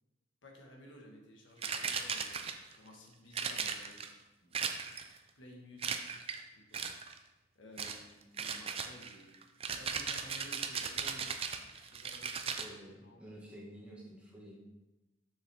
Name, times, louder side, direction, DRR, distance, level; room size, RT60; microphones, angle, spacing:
voice 1, 0.4-4.1 4.4-4.6 5.3-6.8 7.5-9.4 9.8-12.6 13.0-13.2, equal, 75° left, 1 dB, 1.3 m, -55 dB
sound 1, 1.6-2.8 3.3-4.1 4.5-5.2 5.8-6.4 6.7-7.2 7.8-8.0 8.4-12.7, right 6 dB, 30° right, 0.4 m, -37 dB
voice 2, 12.6-14.6, equal, 5° right, -4 dB, 1.3 m, -50 dB
6.7 x 6.5 x 3.4 m, 1.0 s
head